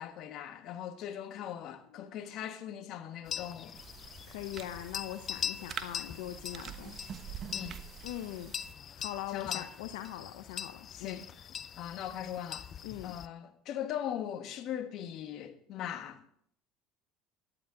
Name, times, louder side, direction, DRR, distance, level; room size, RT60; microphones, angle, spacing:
voice 1, 0.0-3.8 7.5-7.8 9.3-9.7 10.9-11.2 11.8-12.7 13.0-16.2, left 10 dB, 60° left, 1.5 m, -40 dB
sound 1, 3.3-13.3, left 8 dB, 40° left, 0.4 m, -42 dB
sound 2, 3.7-8.7, right 8 dB, 45° right, 1.2 m, -46 dB
voice 2, 4.3-7.0 8.0-8.5 8.9-11.2 12.8-13.1, left 13 dB, 80° left, 0.7 m, -41 dB
13.0 x 11.0 x 3.9 m
supercardioid pair, 90°, 0 cm